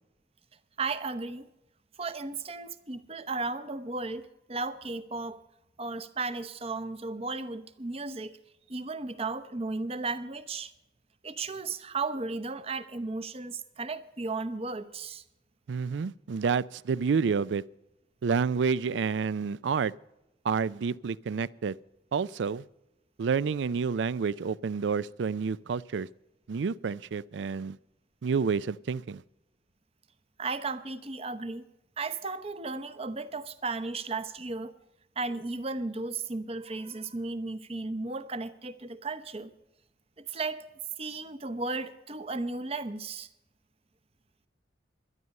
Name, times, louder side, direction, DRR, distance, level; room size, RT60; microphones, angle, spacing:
voice 1, 0.8-1.5 2.0-5.4 5.8-8.4 8.7-10.7 11.2-15.2 30.4-31.6 32.0-34.7 35.2-39.5 40.2-40.7 41.0-43.3, right 3 dB, 35° right, 0.8 m, -35 dB
voice 2, 15.7-17.6 18.2-19.9 20.4-21.8 22.1-22.6 23.2-26.1 26.5-27.8 28.2-29.2, right 5 dB, 80° right, 0.4 m, -29 dB
12.5 x 11.0 x 6.4 m
head